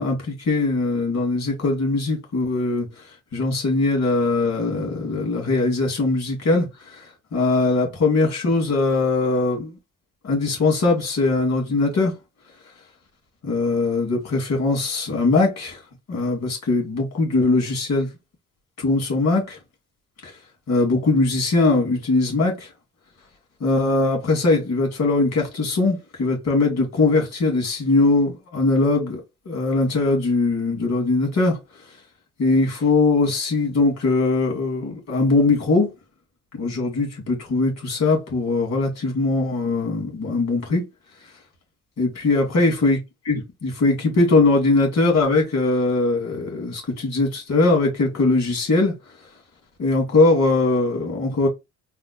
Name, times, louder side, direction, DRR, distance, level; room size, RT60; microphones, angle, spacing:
voice 1, 0.0-2.9 3.3-7.0 7.3-9.8 10.2-12.1 13.4-15.8 16.1-18.1 18.8-19.6 20.2-20.3 20.7-22.7 23.6-29.2 29.5-31.6 32.4-35.9 36.5-40.8 42.0-43.0 43.2-48.9 49.8-51.5, left 3 dB, 60° left, 2.6 m, -21 dB
4.2 x 2.1 x 4.2 m
cardioid pair, 90°, 30 cm